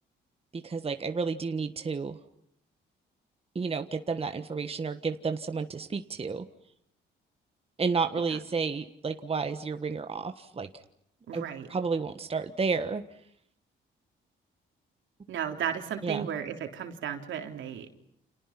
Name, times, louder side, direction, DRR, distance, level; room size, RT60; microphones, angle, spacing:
voice 1, 0.5-2.2 3.5-6.4 7.8-10.7 11.3-13.0 16.0-16.3, right 4 dB, 30° right, 8 dB, 1.4 m, -31 dB
voice 2, 11.3-11.7 15.3-17.9, right 8 dB, 75° right, 5 dB, 3.5 m, -34 dB
30.0 x 28.0 x 6.0 m, 0.72 s
cardioid pair, 90°, 20 cm